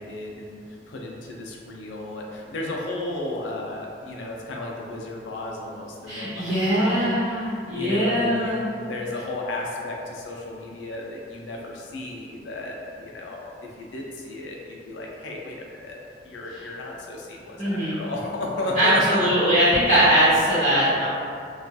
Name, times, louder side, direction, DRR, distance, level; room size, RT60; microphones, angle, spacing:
voice 1, 0.0-7.1 7.7-13.5 13.8-16.0 16.2-19.5, left 2 dB, 85° left, -1 dB, 0.4 m, -33 dB
voice 2, 6.1-8.6 17.6-17.9 18.8-21.1, equal, 40° right, -16 dB, 1.0 m, -21 dB
2.3 x 2.2 x 2.6 m, 2.3 s
head